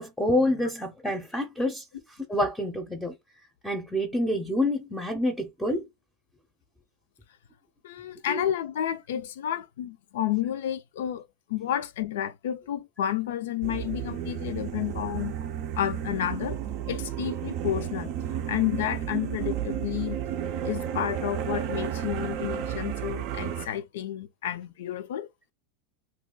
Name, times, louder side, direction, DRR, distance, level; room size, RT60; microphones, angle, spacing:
voice 1, 0.0-1.8 2.3-3.1 3.6-5.9 8.3-8.4, left 1 dB, 5° left, 0.6 m, -27 dB
voice 2, 7.8-15.3 15.8-16.6 16.9-18.1 18.5-20.2 20.6-25.3, left 11 dB, 80° left, 0.4 m, -31 dB
sound 1, 13.6-23.7, right 10 dB, 55° right, 0.4 m, -32 dB
2.4 x 2.2 x 3.7 m
hypercardioid pair, 115°, 0 cm